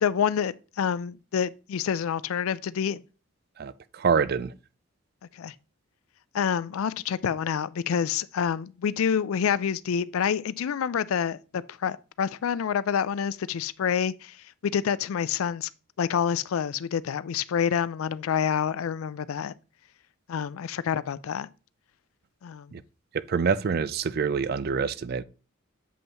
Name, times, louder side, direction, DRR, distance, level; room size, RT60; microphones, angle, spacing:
voice 1, 0.0-3.0 5.3-5.5 6.3-14.4 14.6-15.7 16.0-19.5 20.3-21.5 22.4-22.7, left 7 dB, 80° left, 0.4 m, -27 dB
voice 2, 3.6-4.5 22.7-22.8 23.1-25.2, right 5 dB, 45° right, 0.4 m, -26 dB
7.6 x 5.4 x 2.9 m
head